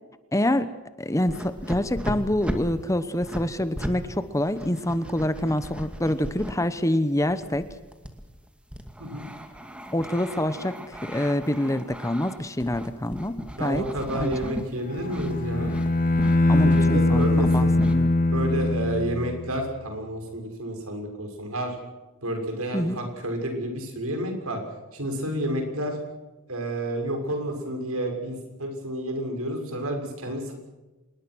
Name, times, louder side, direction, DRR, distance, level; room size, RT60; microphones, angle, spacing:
voice 1, 0.3-0.7 1.0-7.7 9.9-13.9 14.1-14.5 16.5-18.1 22.7-23.0, left 1 dB, 15° left, 12 dB, 1.0 m, -26 dB
sound 1, 1.2-4.0 4.3-6.5 7.2-14.7 14.9-15.4 15.7-15.9 16.2-17.9, equal, 5° right, 2.3 m, -36 dB
voice 2, 13.6-15.7 16.5-17.7 18.3-21.8 22.2-24.6 24.9-26.0 26.5-30.5, right 1 dB, 85° right, 4 dB, 6.5 m, -30 dB
Bowed string instrument, 14.9-19.7, left 2 dB, 40° left, 1.5 m, -22 dB
26.5 x 21.5 x 6.3 m, 1.1 s
head